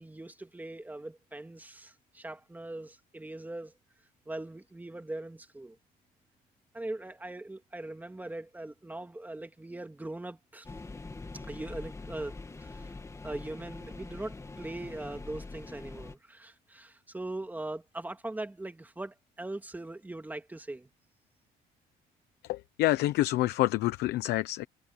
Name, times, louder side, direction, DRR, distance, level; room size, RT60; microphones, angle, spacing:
voice 1, 0.0-3.7 4.3-5.8 6.7-10.7 11.5-12.3 12.6-12.9 13.2-20.9, right 2 dB, 10° right, 2.1 m, -41 dB
sound 1, 10.6-16.1, left 3 dB, 15° left, 2.2 m, -44 dB
voice 2, 22.4-24.7, left 17 dB, 85° left, 0.9 m, -27 dB
cardioid pair, 110°, 17 cm